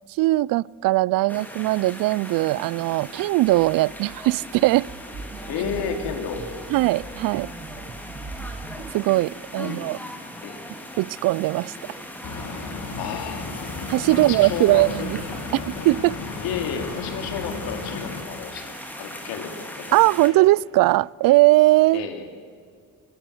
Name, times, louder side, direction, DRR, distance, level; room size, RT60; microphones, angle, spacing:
voice 1, 0.2-4.9 6.7-7.5 8.9-10.0 11.0-11.7 13.9-15.2 15.5-16.2 19.9-22.1, right 19 dB, 65° right, 0.5 m, -20 dB
sound 1, 1.3-20.3, left 1 dB, 5° left, 3.5 m, -39 dB
sound 2, 3.2-8.9, right 4 dB, 35° right, 1.4 m, -40 dB
voice 2, 5.5-6.5 9.4-9.9 10.4-10.6 13.0-13.4 14.1-15.1 15.5-15.7 16.4-18.6 18.9-20.0 20.2-20.3 21.9-22.3, left 7 dB, 80° left, 3.2 m, -32 dB
sound 3, 12.2-18.2, left 3 dB, 55° left, 3.5 m, -34 dB
23.0 x 18.0 x 7.9 m
supercardioid pair, 85°, 36 cm